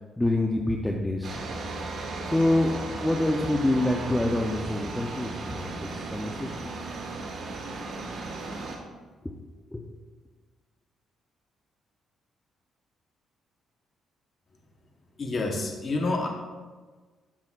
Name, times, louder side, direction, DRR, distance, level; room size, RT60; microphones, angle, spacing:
voice 1, 0.2-1.4 2.2-6.7 9.7-9.8, left 1 dB, 10° left, 1 dB, 0.7 m, -26 dB
sound 1, 1.2-8.8, right 3 dB, 65° right, 1.5 m, -36 dB
voice 2, 15.2-16.3, left 2 dB, 40° left, 2 dB, 1.1 m, -28 dB
13.0 x 6.0 x 2.5 m, 1.4 s
cardioid pair, 90°, 0 cm